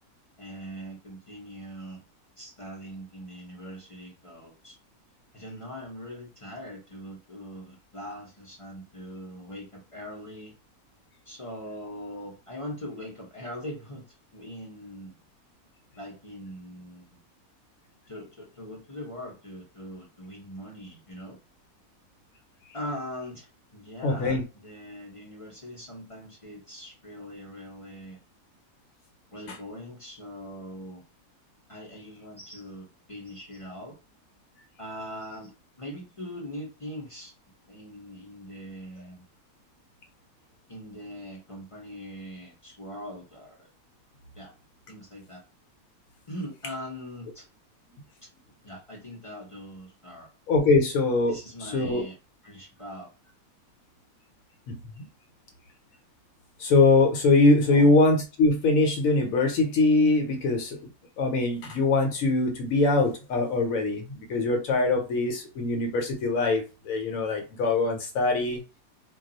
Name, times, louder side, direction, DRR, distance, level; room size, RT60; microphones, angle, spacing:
voice 1, 0.4-2.0 2.4-4.8 5.3-10.5 11.3-14.0 14.3-15.2 16.0-17.2 18.1-21.4 22.7-28.2 29.3-31.0 31.7-34.0 34.8-37.3 37.7-39.2 40.7-43.7 44.3-44.5 44.9-45.4 46.3-47.5 48.6-50.3 51.3-52.1 52.4-53.1 57.7-57.9, equal, 35° left, 0.5 m, -41 dB
voice 2, 24.0-24.4 29.5-29.6 50.5-52.0 54.7-55.1 56.6-60.8 61.2-68.6, left 3 dB, 75° left, 1.0 m, -23 dB
2.3 x 2.3 x 3.8 m
omnidirectional pair, 1.5 m